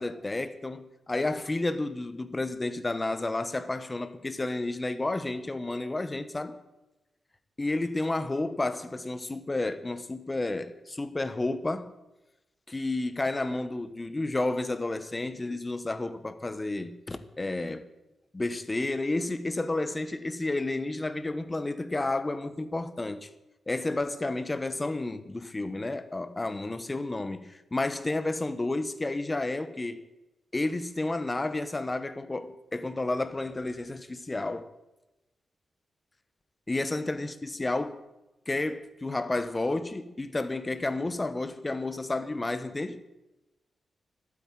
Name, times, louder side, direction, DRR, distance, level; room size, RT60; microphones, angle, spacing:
voice 1, 0.0-6.6 7.6-11.9 12.7-17.9 18.3-23.3 23.7-30.0 30.5-34.7 36.7-38.0 38.5-43.0, left 2 dB, 20° left, 1.0 m, -31 dB
12.0 x 8.7 x 9.5 m
wide cardioid pair, 110°, 0 cm